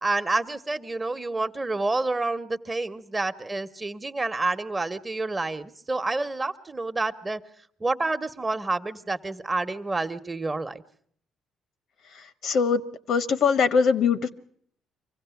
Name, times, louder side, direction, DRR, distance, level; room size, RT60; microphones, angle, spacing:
voice 1, 0.0-7.4 7.8-10.8, right 2 dB, 25° right, 9 dB, 1.1 m, -28 dB
voice 2, 12.4-12.8 13.1-14.3, left 6 dB, 70° left, 12 dB, 1.1 m, -21 dB
24.5 x 16.0 x 7.1 m, 0.64 s
cardioid pair, 80°, 0 cm